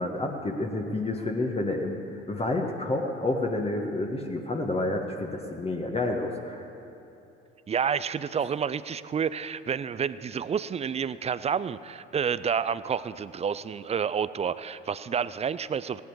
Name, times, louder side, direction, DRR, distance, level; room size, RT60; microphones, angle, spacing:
voice 1, 0.0-2.0 2.3-6.7, left 2 dB, 20° left, 1 dB, 1.4 m, -29 dB
voice 2, 7.7-16.0, right 7 dB, 20° right, 16 dB, 0.4 m, -29 dB
16.5 x 10.5 x 4.8 m, 2.9 s
hypercardioid pair, 60°, 31 cm